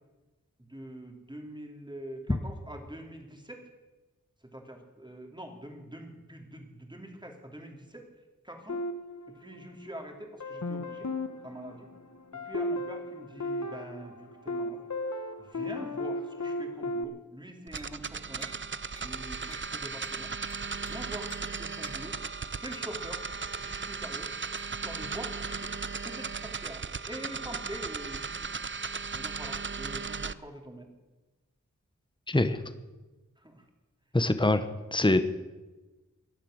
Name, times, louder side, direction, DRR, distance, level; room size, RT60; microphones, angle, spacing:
voice 1, 0.6-3.6 4.4-8.1 8.4-8.8 9.3-11.1 11.4-11.9 12.3-14.8 15.4-18.5 19.0-20.3 20.8-22.2 22.6-23.2 23.6-24.3 24.7-25.7 26.0-28.5 29.1-30.9 33.4-33.7, right 1 dB, 15° right, 3 dB, 2.8 m, -44 dB
sound 1, 8.7-10.0 10.4-17.0, left 1 dB, 65° left, 1.1 m, -35 dB
sound 2, 17.7-18.0 18.4-18.6 19.0-19.1 19.5-19.7 20.0-20.2 20.5-20.9 21.3-21.5 21.8-22.0 22.7-22.9 24.6-24.7, right 2 dB, 40° left, 2.6 m, -50 dB
sound 3, 17.7-30.3, right 5 dB, 40° right, 0.5 m, -36 dB
voice 2, 32.3-32.6 34.1-34.6 34.9-35.3, left 2 dB, 15° left, 11 dB, 1.0 m, -24 dB
18.0 x 11.5 x 6.5 m, 1.2 s
wide cardioid pair, 60°, 31 cm